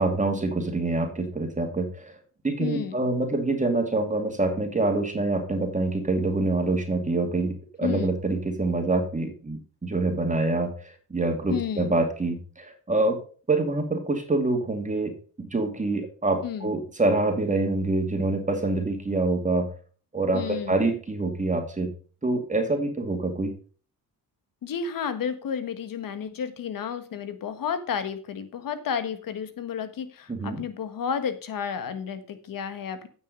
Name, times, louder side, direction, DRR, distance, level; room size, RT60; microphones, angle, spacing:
voice 1, 0.0-2.2 2.4-13.2 13.5-19.7 20.1-21.9 22.2-23.5 30.3-30.6, right 2 dB, 20° right, 4 dB, 2.3 m, -26 dB
voice 2, 2.6-3.1 7.8-8.2 11.5-12.0 16.4-16.7 20.3-20.8 24.6-33.1, left 7 dB, 65° left, 10 dB, 1.5 m, -32 dB
9.0 x 6.5 x 5.3 m, 0.40 s
cardioid pair, 80°, 37 cm